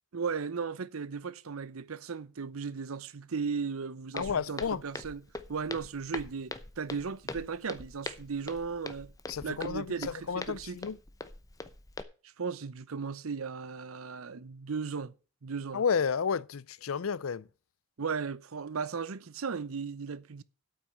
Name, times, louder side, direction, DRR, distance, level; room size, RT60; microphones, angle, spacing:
voice 1, 0.1-5.2 5.5-9.1 9.4-10.8 12.4-15.1 15.4-15.8 18.0-20.4, right 5 dB, 90° right, 0.7 m, -36 dB
voice 2, 4.1-4.8 9.3-11.0 15.7-17.5, left 6 dB, 80° left, 0.5 m, -31 dB
Walk footsteps, 4.2-12.0, left 2 dB, 15° left, 0.8 m, -43 dB
8.9 x 8.5 x 6.7 m
head